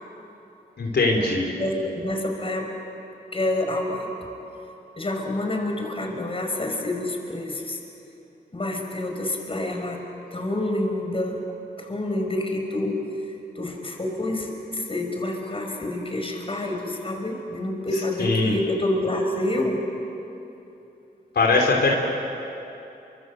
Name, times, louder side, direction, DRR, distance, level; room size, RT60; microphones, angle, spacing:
voice 1, 0.8-1.5 18.2-18.5 21.4-22.0, left 3 dB, 75° left, 0 dB, 3.9 m, -20 dB
voice 2, 1.6-2.7 3.3-4.3 5.0-7.8 8.5-10.0 10.3-11.5 11.8-13.1 13.6-19.8, left 1 dB, 30° left, 2 dB, 5.3 m, -28 dB
29.5 x 25.0 x 7.9 m, 2.9 s
cardioid pair, 80°, 17 cm